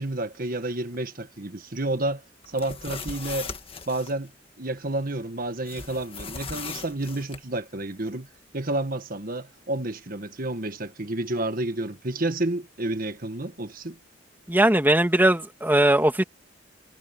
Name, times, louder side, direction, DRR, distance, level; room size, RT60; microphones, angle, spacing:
voice 1, 0.0-3.5 3.9-4.3 4.6-8.3 8.5-14.0, right 2 dB, 45° right, 1.5 m, -30 dB
sound 1, 2.4-4.1 5.7-7.4, left 5 dB, 30° left, 1.8 m, -38 dB
voice 2, 14.5-16.2, right 1 dB, 10° right, 2.1 m, -19 dB
head